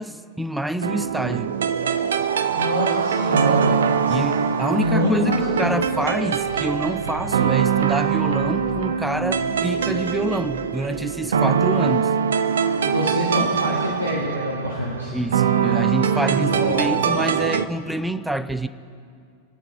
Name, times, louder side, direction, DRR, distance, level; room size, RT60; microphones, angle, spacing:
voice 1, 0.0-1.5 4.1-4.3 4.6-12.1 15.1-18.7, right 1 dB, 5° right, 13 dB, 0.5 m, -27 dB
sound 1, 0.8-17.7, right 7 dB, 65° right, 0.6 m, -23 dB
voice 2, 2.5-4.3 4.7-5.8 12.8-15.1 16.1-17.3, left 1 dB, 85° right, -5 dB, 1.8 m, -26 dB
sound 2, 4.8-11.0, left 6 dB, 30° left, 1.4 m, -44 dB
23.0 x 8.9 x 3.7 m, 2.3 s
figure-of-eight pair, 90°, 0 cm